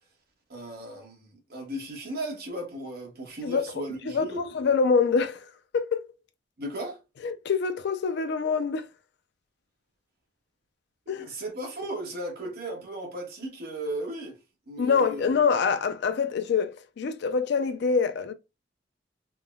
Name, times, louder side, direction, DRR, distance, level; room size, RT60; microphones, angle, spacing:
voice 1, 0.5-4.5 6.6-7.0 11.2-14.4 14.7-15.4, right 1 dB, 55° right, 1.1 m, -36 dB
voice 2, 4.1-5.4 5.7-6.1 7.2-8.9 11.1-11.3 14.8-18.3, left 5 dB, 60° left, 0.4 m, -25 dB
3.4 x 2.1 x 2.2 m
head